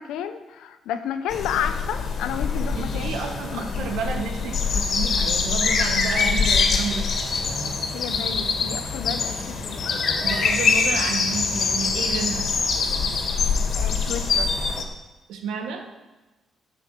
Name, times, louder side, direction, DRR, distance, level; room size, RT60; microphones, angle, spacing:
voice 1, 0.0-3.6 7.9-10.0 13.7-14.5, left 8 dB, 90° left, 9 dB, 0.9 m, -31 dB
sound 1, 1.3-14.8, left 5 dB, 60° left, 2.0 m, -24 dB
voice 2, 2.8-7.1 10.2-12.5 15.3-15.9, right 5 dB, 85° right, 4 dB, 1.6 m, -31 dB
11.0 x 7.0 x 7.6 m, 1.1 s
cardioid pair, 90°, 0 cm